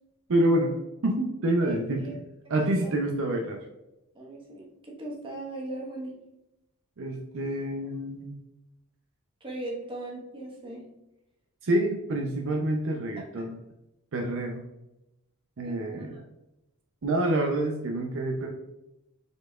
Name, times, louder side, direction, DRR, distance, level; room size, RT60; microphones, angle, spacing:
voice 1, 0.3-2.2 2.5-3.6 7.0-8.3 11.6-13.5 14.1-14.6 15.6-16.1 17.0-18.5, right 1 dB, 60° right, 2 dB, 0.6 m, -27 dB
voice 2, 4.1-6.1 9.4-10.8 13.4-13.5 15.6-15.8 16.1-16.2 17.1-17.2, right 2 dB, 25° right, -3 dB, 1.2 m, -38 dB
5.0 x 4.1 x 2.3 m, 0.93 s
head